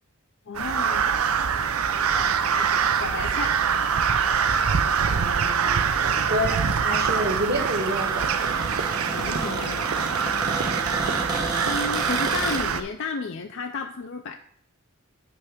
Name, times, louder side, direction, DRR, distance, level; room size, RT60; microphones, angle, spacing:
voice 1, 0.5-1.1 2.2-3.6 9.1-9.9 11.7-14.4, left 4 dB, 60° left, 5 dB, 0.5 m, -33 dB
Crow, 0.5-12.8, right 6 dB, 75° right, 0.6 m, -24 dB
voice 2, 5.1-5.8 6.1-8.3, equal, 45° right, 2 dB, 1.4 m, -28 dB
Cupboard open or close, 5.9-12.6, right 2 dB, 20° right, 1.1 m, -33 dB
8.8 x 3.3 x 6.6 m, 0.69 s
head